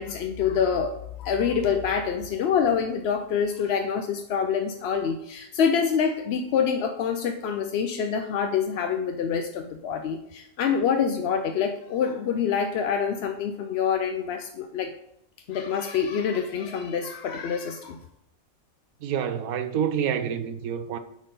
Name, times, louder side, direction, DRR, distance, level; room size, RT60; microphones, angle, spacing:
voice 1, 0.0-14.9 15.5-18.0, left 7 dB, 65° left, 0.7 m, -26 dB
voice 2, 19.0-21.0, right 8 dB, 85° right, 1.2 m, -27 dB
9.0 x 4.3 x 5.3 m
omnidirectional pair, 1.5 m